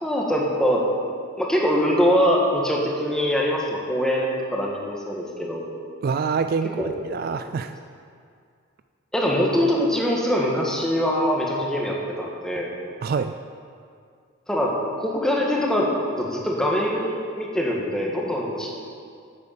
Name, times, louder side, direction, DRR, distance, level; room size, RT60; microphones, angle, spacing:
voice 1, 0.0-0.8 1.4-5.7 6.8-6.9 9.1-12.7 14.5-15.9 16.2-18.7, equal, 5° left, -3 dB, 1.6 m, -23 dB
voice 2, 6.0-7.7 13.0-13.4, right 5 dB, 50° right, 10 dB, 0.3 m, -26 dB
9.0 x 8.4 x 6.9 m, 2.3 s
head